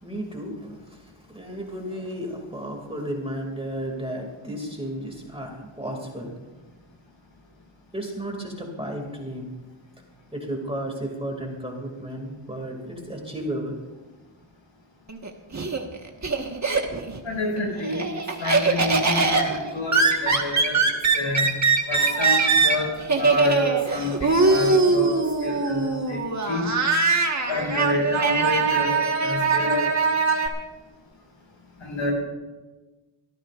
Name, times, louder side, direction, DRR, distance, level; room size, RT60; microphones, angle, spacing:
voice 1, 0.0-6.3 7.9-9.5 10.3-13.7, right 1 dB, 10° right, 0 dB, 2.5 m, -33 dB
Laughter, 15.1-17.2 17.6-30.5, right 4 dB, 35° right, 1.5 m, -22 dB
voice 2, 17.2-18.1 18.4-20.8 21.1-21.6 21.9-26.7 27.5-28.9 29.2-29.9 31.8-32.1, left 1 dB, 65° left, -1 dB, 6.0 m, -28 dB
25.5 x 14.5 x 2.5 m, 1.2 s
wide cardioid pair, 135°, 50 cm